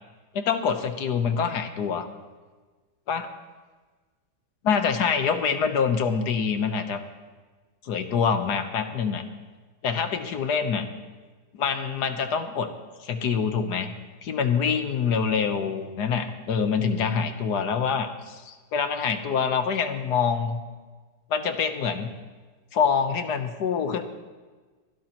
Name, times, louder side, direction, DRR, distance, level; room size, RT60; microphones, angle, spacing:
voice 1, 0.3-2.1 3.1-3.3 4.6-7.0 7.8-9.2 9.8-10.9 11.5-12.7 13.0-13.9 14.2-20.6 21.3-22.1 22.7-24.0, left 6 dB, 70° left, 8 dB, 1.5 m, -25 dB
24.0 x 12.0 x 3.0 m, 1.3 s
omnidirectional pair, 1.8 m